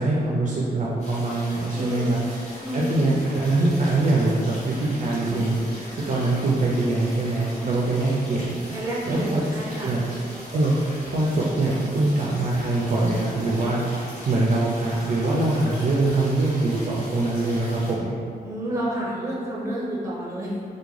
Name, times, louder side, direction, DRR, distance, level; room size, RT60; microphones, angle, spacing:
voice 1, 0.0-2.2 2.7-5.6 6.1-8.5 9.1-9.4 9.8-10.0 10.5-10.7 11.1-13.8 14.3-18.1, right 2 dB, 50° right, -5 dB, 0.4 m, -23 dB
sound 1, 1.0-17.9, left 1 dB, 45° left, 0.9 m, -40 dB
voice 2, 1.7-2.2 2.6-3.0 8.7-9.9 18.4-20.5, right 1 dB, 15° right, -6 dB, 0.7 m, -29 dB
3.5 x 2.2 x 3.1 m, 2.4 s
wide cardioid pair, 135°, 16 cm